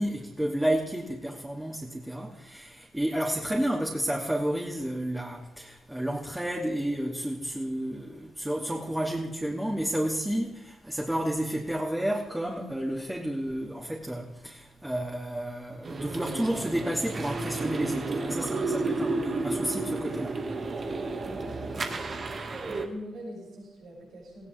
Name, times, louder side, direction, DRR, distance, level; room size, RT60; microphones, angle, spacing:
voice 1, 0.0-20.4, right 1 dB, 10° right, 2.7 m, -31 dB
sound 1, 15.8-22.9, right 3 dB, 50° right, 2.0 m, -32 dB
voice 2, 21.2-22.4 22.7-24.5, equal, 75° right, 7.2 m, -44 dB
19.0 x 16.0 x 3.6 m
supercardioid pair, 50°, 0 cm